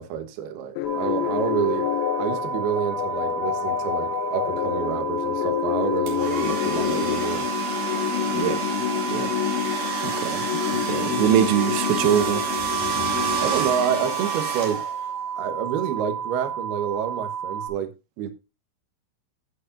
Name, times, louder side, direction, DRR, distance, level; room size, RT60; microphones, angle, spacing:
voice 1, 0.0-1.9 2.2-7.5 13.4-14.8 15.4-17.9 18.2-18.3, right 9 dB, 70° right, 2.5 m, -28 dB
sound 1, 0.8-14.5, left 12 dB, 85° left, 2.5 m, -28 dB
sound 2, 0.8-17.7, right 7 dB, 60° left, 2.6 m, -32 dB
sound 3, 6.1-15.2, right 6 dB, 45° right, 3.1 m, -30 dB
voice 2, 10.0-12.4, right 10 dB, 85° right, 3.4 m, -23 dB
17.5 x 6.3 x 2.6 m
omnidirectional pair, 6.0 m